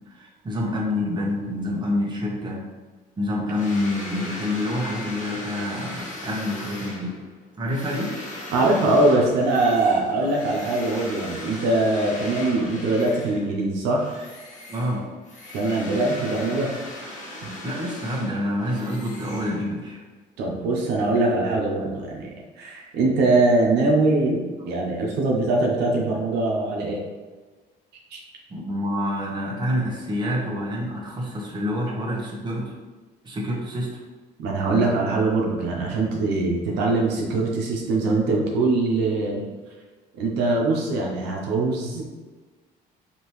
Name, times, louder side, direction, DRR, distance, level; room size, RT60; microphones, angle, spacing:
voice 1, 0.1-2.7 3.2-7.1 7.6-8.2 14.7-15.0 17.6-20.1 28.5-32.7 33.2-34.0, left 1 dB, 25° right, -3 dB, 1.2 m, -27 dB
sound 1, 3.5-13.6 13.9-20.0, left 1 dB, 45° left, 1.3 m, -38 dB
voice 2, 8.5-14.0 15.5-16.7 17.4-17.5 20.4-22.3 22.6-27.0 28.1-28.2 34.4-39.4 40.2-42.0, right 2 dB, 85° right, -1 dB, 0.9 m, -22 dB
5.2 x 2.9 x 3.1 m, 1.3 s
cardioid pair, 110°, 17 cm